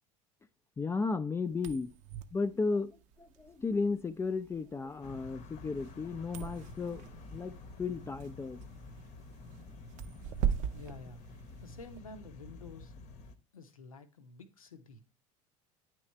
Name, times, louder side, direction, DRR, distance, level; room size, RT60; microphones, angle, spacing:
voice 1, 0.8-1.9 2.3-7.0 7.3-8.6, left 4 dB, 15° left, 0.4 m, -34 dB
sound 1, 1.5-12.0, right 8 dB, 45° right, 0.5 m, -41 dB
sound 2, 5.0-13.3, left 3 dB, 40° left, 0.8 m, -50 dB
voice 2, 10.7-11.2 11.6-12.9 13.5-15.0, left 3 dB, 80° left, 0.7 m, -50 dB
9.1 x 3.1 x 4.4 m
figure-of-eight pair, 70°, 17 cm